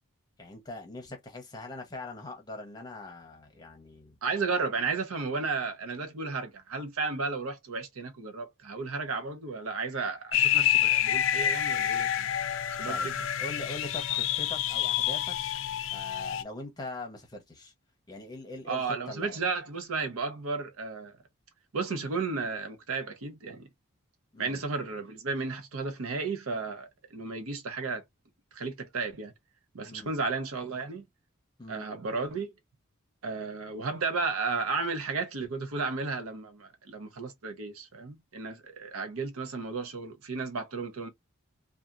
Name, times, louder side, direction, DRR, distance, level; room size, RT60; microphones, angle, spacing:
voice 1, 0.4-4.1 12.9-13.1 13.4-15.4 15.9-17.7 18.1-19.4 24.3-24.6 29.9-30.1 31.6-31.9, left 2 dB, 20° left, 0.8 m, -42 dB
voice 2, 4.2-12.3 12.8-13.1 18.7-21.2 21.7-23.7 24.4-28.0 28.5-29.3 29.7-31.0 31.7-32.5 33.2-41.1, right 4 dB, 85° right, 0.7 m, -33 dB
sound 1, 10.3-16.4, left 10 dB, 65° left, 0.3 m, -28 dB
2.8 x 2.3 x 2.4 m
head